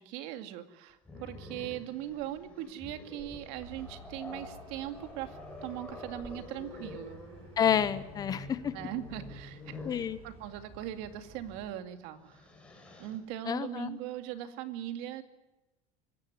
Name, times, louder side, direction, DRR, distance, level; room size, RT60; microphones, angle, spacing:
voice 1, 0.0-7.2 8.7-12.5 13.0-15.2, right 12 dB, 65° right, 8 dB, 2.3 m, -40 dB
Growling, 1.0-10.1 11.4-11.6 12.0-13.2, left 2 dB, 5° left, 4.3 m, -47 dB
sound 1, 3.6-11.7, right 2 dB, 35° right, 7.8 m, -53 dB
voice 2, 7.6-8.7 9.8-10.2 13.5-14.0, left 8 dB, 25° left, 14 dB, 0.9 m, -29 dB
25.0 x 15.0 x 9.5 m, 1.1 s
cardioid pair, 170°, 17 cm